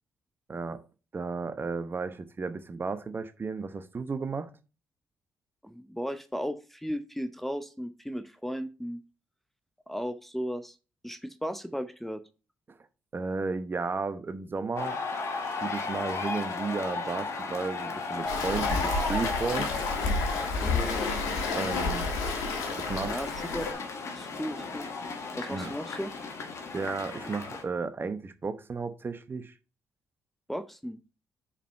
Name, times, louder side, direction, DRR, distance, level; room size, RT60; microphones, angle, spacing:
voice 1, 0.5-0.8 1.1-4.5 13.1-15.0 15.4-19.8 21.5-22.1 22.8-23.2 25.5-25.7 26.7-29.5, right 4 dB, 35° right, 0.9 m, -33 dB
voice 2, 5.6-9.0 9.9-10.8 11.0-12.2 20.6-21.2 23.0-23.6 24.1-24.9 25.3-26.1 30.5-31.0, equal, 5° left, 0.7 m, -35 dB
sound 1, 14.8-27.6, left 3 dB, 55° left, 1.6 m, -35 dB
Waves surf, 18.3-23.7, left 3 dB, 75° left, 1.5 m, -30 dB
5.0 x 5.0 x 5.5 m
hypercardioid pair, 45°, 6 cm